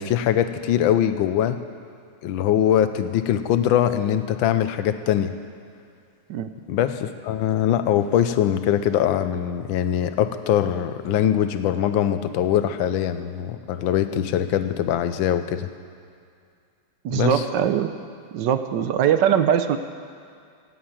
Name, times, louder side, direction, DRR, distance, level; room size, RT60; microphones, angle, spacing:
voice 1, 0.0-1.6 2.2-5.3 6.7-15.7 17.1-17.4, left 10 dB, 90° left, 10 dB, 1.5 m, -22 dB
voice 2, 17.0-17.9 18.3-19.8, right 9 dB, 70° right, 10 dB, 1.3 m, -21 dB
16.5 x 7.9 x 8.7 m, 2.3 s
omnidirectional pair, 2.1 m